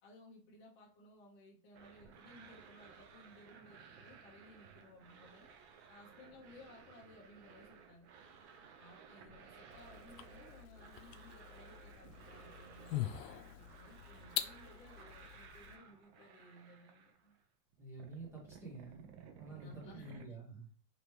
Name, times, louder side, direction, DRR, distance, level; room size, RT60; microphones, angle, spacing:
voice 1, 0.0-5.5 5.9-8.1 8.8-17.4 19.6-20.2, left 1 dB, 25° left, -2 dB, 1.0 m, -59 dB
sound 1, 1.7-17.5 17.7-20.3, right 6 dB, 45° right, 0.6 m, -58 dB
sound 2, 9.7-15.8, left 13 dB, 85° left, 0.7 m, -44 dB
voice 2, 17.8-19.1 19.3-20.7, right 3 dB, 5° right, -3 dB, 0.8 m, -49 dB
5.1 x 3.0 x 3.0 m, 0.38 s
supercardioid pair, 180°, 50 cm